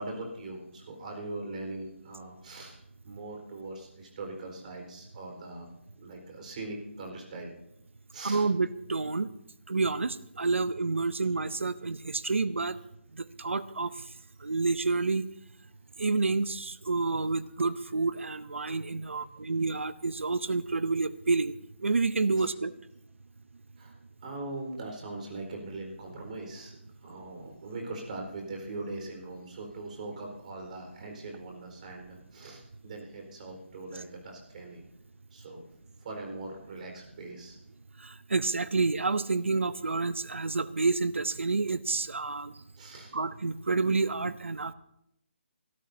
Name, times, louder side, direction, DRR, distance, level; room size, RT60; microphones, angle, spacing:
voice 1, 0.0-2.8 3.0-5.7 6.0-7.5 8.1-8.5 12.2-12.3 22.3-22.5 23.8-26.8 27.0-34.8 35.3-35.6 36.0-37.6 42.8-43.1, right 2 dB, 40° right, 1 dB, 4.4 m, -41 dB
voice 2, 8.2-9.3 9.7-12.8 13.1-13.9 14.4-15.3 16.0-21.5 21.8-22.7 38.0-42.5 43.1-44.7, right 3 dB, 85° right, 15 dB, 0.7 m, -29 dB
26.0 x 13.0 x 2.8 m, 0.81 s
figure-of-eight pair, 155°, 6 cm